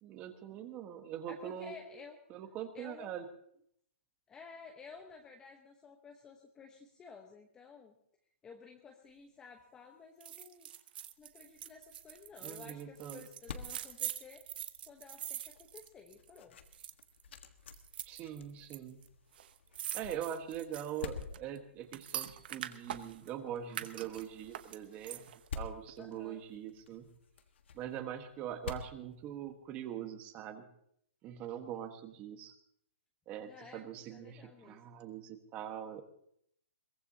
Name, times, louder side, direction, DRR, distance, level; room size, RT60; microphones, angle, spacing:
voice 1, 0.0-1.7 2.3-3.2 12.4-13.2 18.1-19.0 19.9-25.3 25.5-27.1 27.7-30.7 31.2-32.6 33.3-36.0, right 10 dB, 20° right, 8 dB, 1.4 m, -42 dB
voice 2, 1.3-2.2 2.7-3.2 4.3-7.9 8.4-10.7 11.2-14.4 14.9-16.6 26.0-26.4 33.4-34.8, left 5 dB, 10° left, 3 dB, 1.0 m, -53 dB
sound 1, 10.2-16.4 16.7-17.2 17.7-18.8 19.0-19.1 19.3-23.3 23.7-25.5 25.9-26.0, right 11 dB, 50° right, 0.9 m, -44 dB
sound 2, 11.2-29.9, left 5 dB, 60° left, 1.5 m, -50 dB
22.5 x 18.0 x 2.8 m, 0.69 s
hypercardioid pair, 160°, 7 cm